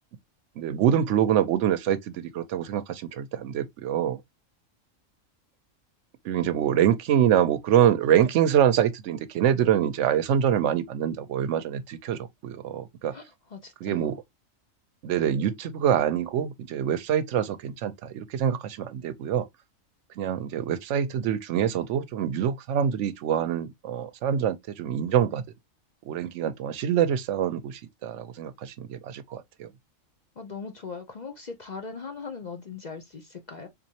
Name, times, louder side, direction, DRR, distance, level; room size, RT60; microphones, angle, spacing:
voice 1, 0.6-4.2 6.2-13.1 13.8-14.2 15.0-19.5 20.2-25.4 26.1-29.7, right 9 dB, 70° right, 0.9 m, -25 dB
voice 2, 13.1-14.2 30.4-33.7, left 5 dB, 45° left, 0.6 m, -40 dB
3.7 x 3.0 x 2.7 m
omnidirectional pair, 1.4 m